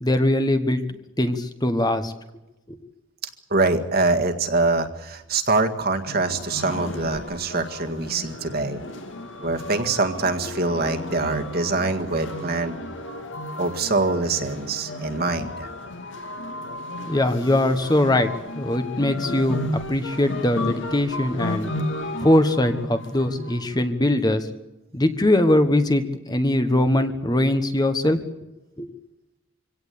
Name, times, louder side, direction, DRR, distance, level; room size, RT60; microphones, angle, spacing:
voice 1, 0.0-2.1 2.7-2.8 17.1-18.3 18.6-19.6 19.9-21.7 22.2-24.5 24.9-28.2 28.8-28.9, left 1 dB, 20° left, 8 dB, 1.2 m, -21 dB
voice 2, 3.5-8.8 9.4-12.8 13.6-15.7, right 3 dB, 45° right, 6 dB, 1.8 m, -24 dB
sound 1, 6.1-23.9, left 1 dB, 60° left, 2.5 m, -34 dB
25.0 x 17.0 x 8.5 m, 0.98 s
head